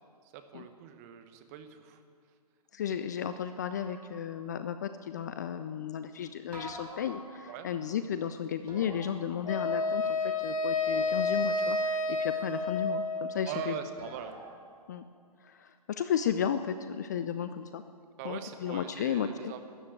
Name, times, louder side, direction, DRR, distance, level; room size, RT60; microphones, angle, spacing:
voice 1, 0.3-2.0 7.5-7.7 13.5-14.4 18.2-19.7, right 8 dB, 25° right, 8 dB, 1.0 m, -41 dB
voice 2, 2.7-13.8 14.9-15.0 15.4-17.8 18.2-19.5, left 8 dB, 30° left, 11 dB, 0.4 m, -34 dB
sound 1, 3.7-4.6 6.5-7.9 8.7-10.0 10.9-11.8 14.0-14.6, equal, 80° right, 4.6 m, -48 dB
Wind instrument woodwind instrument, 9.5-13.6, left 3 dB, 55° left, 1.1 m, -30 dB
13.0 x 9.5 x 9.4 m, 2.2 s
figure-of-eight pair, 130°, 20 cm